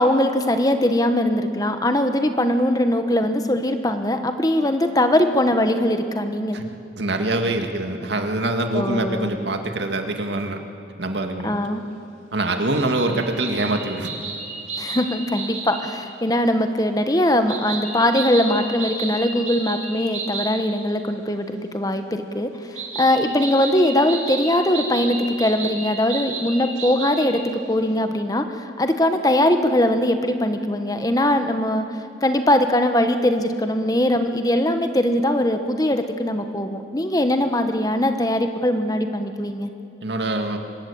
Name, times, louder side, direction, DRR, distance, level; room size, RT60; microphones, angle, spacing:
voice 1, 0.0-6.6 8.7-9.4 11.4-11.8 13.1-13.2 14.8-31.8 32.2-39.7, left 1 dB, 20° left, 7 dB, 1.1 m, -21 dB
voice 2, 7.0-10.6 11.0-11.6 12.3-14.1 40.0-40.6, right 2 dB, 70° right, 5 dB, 2.1 m, -24 dB
sound 1, 12.7-16.0 17.5-20.6 22.8-27.4, right 3 dB, 40° right, 4.7 m, -32 dB
24.5 x 20.5 x 8.6 m, 2.6 s
head